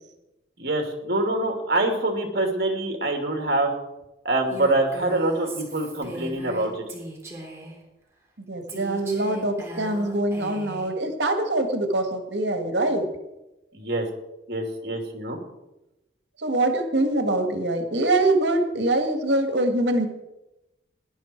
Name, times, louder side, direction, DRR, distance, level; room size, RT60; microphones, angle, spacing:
voice 1, 0.6-3.7 4.2-6.8 13.7-14.1 14.5-15.4, right 2 dB, 55° right, 3 dB, 2.9 m, -25 dB
Female speech woman speaking, 4.5-7.8 8.7-10.9, right 1 dB, 15° right, 3.2 m, -38 dB
voice 2, 8.5-13.1 14.8-14.9 16.4-20.1, right 2 dB, 80° right, 6 dB, 1.8 m, -24 dB
18.0 x 11.0 x 4.5 m, 0.94 s
head